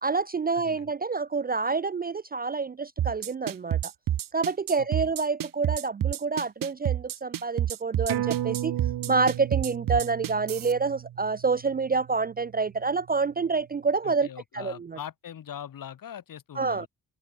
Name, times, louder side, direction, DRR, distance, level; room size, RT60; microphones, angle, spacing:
voice 1, 0.0-3.9 4.3-8.8 9.1-14.3 14.5-15.0 16.6-16.9, right 4 dB, 25° right, 0.4 m, -27 dB
voice 2, 0.6-0.9 4.8-5.1 14.0-16.9, left 9 dB, 55° left, 3.5 m, -42 dB
sound 1, 3.0-10.7, right 11 dB, 55° right, 1.0 m, -28 dB
sound 2, 8.1-13.0 13.4-13.5, right 12 dB, 80° right, 2.2 m, -35 dB
wide cardioid pair, 175°, 39 cm